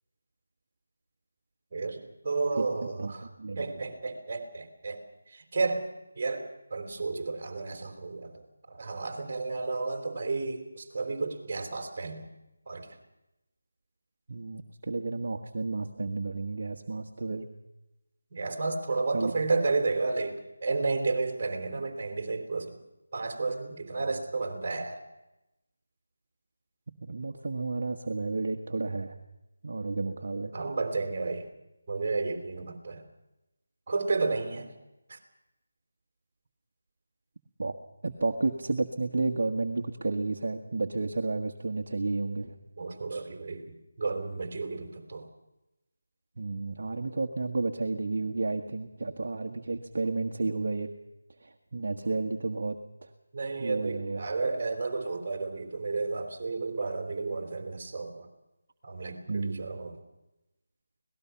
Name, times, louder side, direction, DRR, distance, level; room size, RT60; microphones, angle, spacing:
voice 1, 1.7-3.3 3.6-5.9 6.2-12.3 12.7-13.0 18.3-22.8 23.1-25.0 30.5-31.5 31.9-33.1 33.9-34.7 35.1-35.2 42.8-45.3 53.3-58.3 58.8-60.0, right 3 dB, 35° right, 5 dB, 3.8 m, -32 dB
voice 2, 2.6-3.1 3.4-3.8 14.3-17.5 19.1-19.3 26.9-29.1 29.6-30.5 37.6-37.8 38.0-42.5 46.4-50.9 51.4-53.1 53.6-54.2 59.3-59.7, right 3 dB, 55° right, 3 dB, 1.4 m, -32 dB
25.5 x 18.5 x 5.9 m, 0.95 s
figure-of-eight pair, 165°, 0 cm